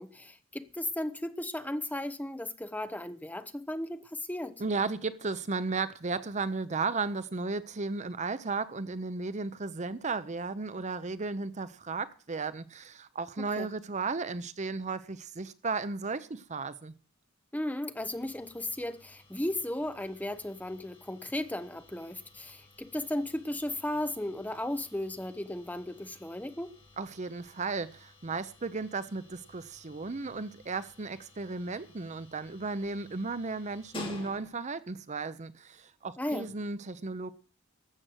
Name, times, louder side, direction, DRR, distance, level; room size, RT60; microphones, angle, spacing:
voice 1, 0.0-4.5 13.4-13.7 17.5-26.7 36.2-36.5, left 1 dB, 10° left, 0.9 m, -35 dB
voice 2, 4.6-16.9 27.0-37.3, right 4 dB, 35° right, 0.7 m, -35 dB
sound 1, 18.0-34.8, left 2 dB, 25° left, 3.0 m, -53 dB
13.0 x 7.7 x 7.8 m
head